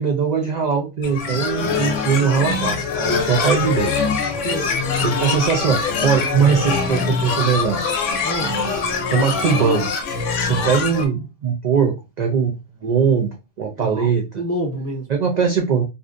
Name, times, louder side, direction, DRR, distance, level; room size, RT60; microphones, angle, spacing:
voice 1, 0.0-3.9 5.0-7.8 9.1-9.9 10.4-12.6 12.8-14.2 15.1-15.9, right 6 dB, 65° right, 0.4 m, -20 dB
sound 1, 1.0-11.1, left 5 dB, 90° left, 1.0 m, -23 dB
Ringtone, 3.1-6.5 6.9-10.7 11.1-11.2, left 7 dB, 60° left, 0.7 m, -38 dB
voice 2, 4.4-4.8 8.2-8.6 13.8-15.1, equal, 25° left, 0.3 m, -28 dB
2.6 x 2.1 x 2.4 m
omnidirectional pair, 1.2 m